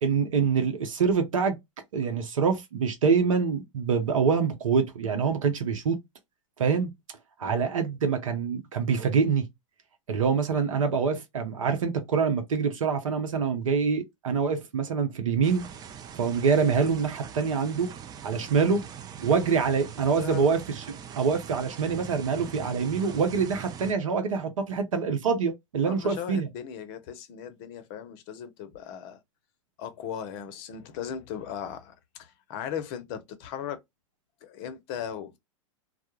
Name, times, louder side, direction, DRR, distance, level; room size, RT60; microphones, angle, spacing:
voice 1, 0.0-1.6 1.9-6.0 6.6-6.9 7.4-9.5 10.1-15.6 16.1-17.9 18.2-18.8 19.2-26.5, right 5 dB, 80° right, 0.6 m, -25 dB
sound 1, 15.4-23.9, right 9 dB, 25° right, 0.4 m, -42 dB
voice 2, 20.2-20.5 24.2-24.4 25.8-29.2 29.8-33.8 34.4-35.4, left 9 dB, 45° left, 0.6 m, -38 dB
2.2 x 2.0 x 2.9 m
hypercardioid pair, 105°, 17 cm